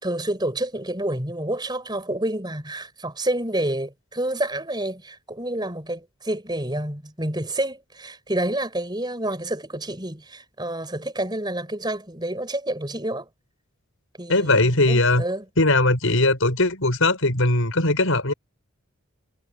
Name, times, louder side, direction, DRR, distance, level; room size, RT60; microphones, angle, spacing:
voice 1, 0.0-13.3 14.2-15.4, right 1 dB, 20° right, 5.4 m, -28 dB
voice 2, 14.3-15.2 15.6-18.3, left 2 dB, 70° left, 5.7 m, -19 dB
head